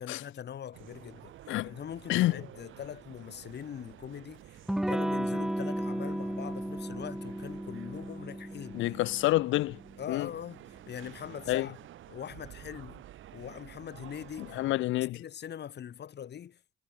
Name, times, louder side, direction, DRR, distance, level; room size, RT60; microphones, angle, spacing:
voice 1, 0.0-1.3 1.6-4.6 4.9-8.8 10.0-11.8 12.1-13.0 13.3-14.5 15.1-16.6, left 9 dB, 60° left, 3.0 m, -42 dB
sound 1, 0.7-14.8, right 13 dB, 80° right, 4.0 m, -51 dB
voice 2, 2.1-2.4 8.7-9.8 10.1-10.3 11.5-11.7 14.4-15.2, left 17 dB, 80° left, 0.4 m, -28 dB
Electric guitar / Strum, 4.7-10.1, right 1 dB, 5° right, 0.4 m, -34 dB
cardioid pair, 90°, 20 cm